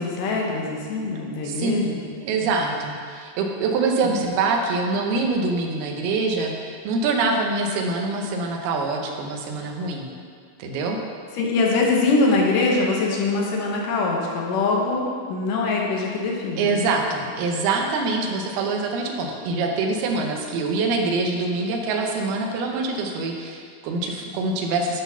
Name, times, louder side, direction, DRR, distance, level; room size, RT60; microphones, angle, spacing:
voice 1, 0.0-2.1 2.4-2.5 4.0-4.3 11.3-16.9, left 3 dB, 70° left, -1 dB, 2.3 m, -23 dB
voice 2, 1.4-1.9 2.2-10.1 10.6-11.0 16.6-25.0, right 3 dB, 85° right, 2 dB, 2.7 m, -25 dB
11.0 x 4.0 x 5.5 m, 2.1 s
omnidirectional pair, 4.4 m